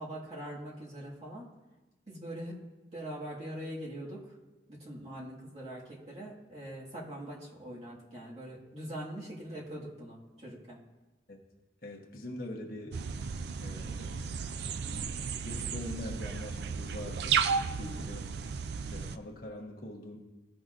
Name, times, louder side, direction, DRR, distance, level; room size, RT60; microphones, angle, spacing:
voice 1, 0.0-1.5 2.1-2.6 2.9-4.3 4.7-10.8 17.8-18.1, right 1 dB, 35° right, -6 dB, 1.9 m, -42 dB
voice 2, 11.8-13.0 13.6-17.4 17.8-18.3 18.8-20.2, left 1 dB, 50° left, 0 dB, 1.1 m, -43 dB
sound 1, 12.9-19.2, right 6 dB, 65° right, 0.4 m, -34 dB
15.5 x 5.9 x 2.6 m, 1.1 s
head